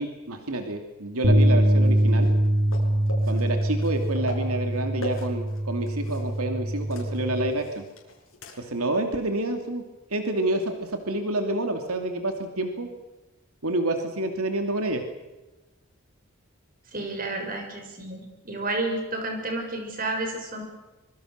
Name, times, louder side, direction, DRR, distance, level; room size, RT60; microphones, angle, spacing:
voice 1, 0.0-2.3 3.3-7.8 8.6-9.8 10.1-12.9 13.6-15.0, right 1 dB, 85° right, 5 dB, 2.7 m, -28 dB
sound 1, 1.2-7.5, right 1 dB, 70° right, 3.8 m, -23 dB
sound 2, 1.8-6.5 6.7-8.8 9.2-9.3 11.8-11.9, left 1 dB, 65° left, 6.4 m, -42 dB
voice 2, 16.9-20.6, right 2 dB, 40° right, 4 dB, 6.3 m, -31 dB
25.5 x 23.5 x 6.7 m, 1.1 s
head